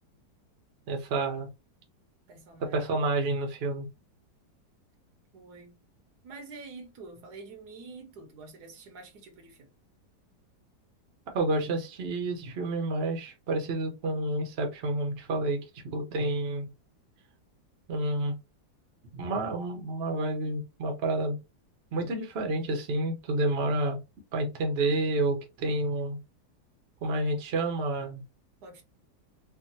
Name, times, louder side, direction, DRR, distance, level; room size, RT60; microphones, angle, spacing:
voice 1, 0.9-1.5 2.7-3.9 11.3-15.6 15.8-16.7 17.9-18.3 19.1-21.4 21.9-24.0 24.3-26.2 27.0-28.2, right 2 dB, 50° right, 0.8 m, -29 dB
voice 2, 2.3-3.0 5.3-5.7 6.2-9.7 28.6-28.8, right 3 dB, 70° right, 1.3 m, -47 dB
3.5 x 2.3 x 2.7 m
omnidirectional pair, 1.9 m